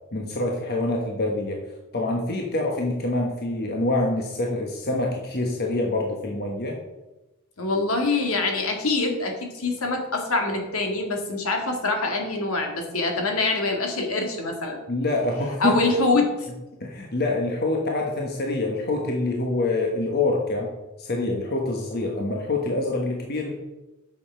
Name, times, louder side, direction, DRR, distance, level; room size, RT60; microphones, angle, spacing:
voice 1, 0.1-1.6 1.9-6.8 14.9-15.8 16.8-20.7 21.0-23.5, left 2 dB, 45° left, 0 dB, 1.3 m, -26 dB
voice 2, 7.6-14.8 15.6-16.5, left 3 dB, 70° left, 2 dB, 2.1 m, -25 dB
9.6 x 6.8 x 5.6 m, 1.1 s
head